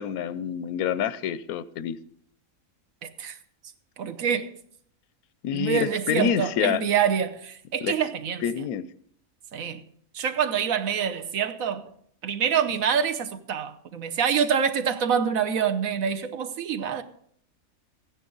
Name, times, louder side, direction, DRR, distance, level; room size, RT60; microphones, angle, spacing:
voice 1, 0.0-2.0 5.4-6.8 7.8-7.9 8.4-8.8, left 9 dB, 85° left, 1.1 m, -27 dB
voice 2, 3.0-3.4 4.0-4.5 5.5-8.4 9.5-9.8 10.1-11.8 12.2-17.0, right 7 dB, 75° right, 1.3 m, -26 dB
15.0 x 9.7 x 3.9 m
omnidirectional pair, 1.5 m